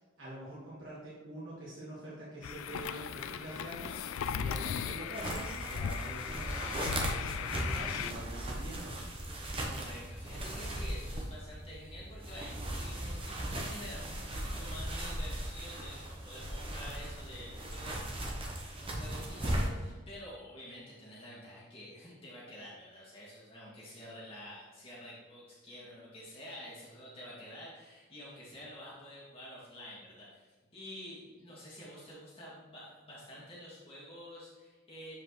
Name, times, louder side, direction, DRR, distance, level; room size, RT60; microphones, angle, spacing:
voice 1, 0.0-9.0, right 1 dB, 65° right, -7 dB, 1.5 m, -45 dB
sound 1, 2.4-8.1, left 7 dB, 75° left, 0.3 m, -37 dB
sound 2, 5.1-19.7, right 1 dB, 25° right, 0.8 m, -38 dB
voice 2, 9.7-18.0 18.8-30.5 30.7-35.1, equal, 25° left, -8 dB, 2.1 m, -49 dB
7.3 x 4.8 x 3.1 m, 1.3 s
head